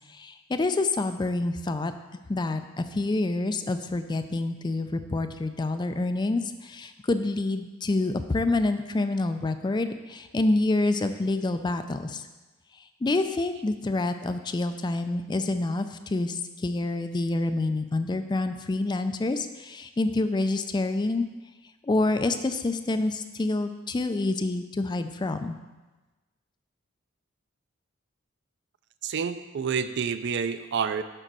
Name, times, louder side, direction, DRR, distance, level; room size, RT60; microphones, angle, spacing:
voice 1, 0.1-1.9 2.3-12.2 13.0-21.3 21.8-25.6, left 2 dB, 20° left, 8 dB, 0.4 m, -27 dB
voice 2, 29.0-31.0, right 6 dB, 60° right, 11 dB, 0.4 m, -28 dB
6.6 x 5.1 x 6.0 m, 1.2 s
head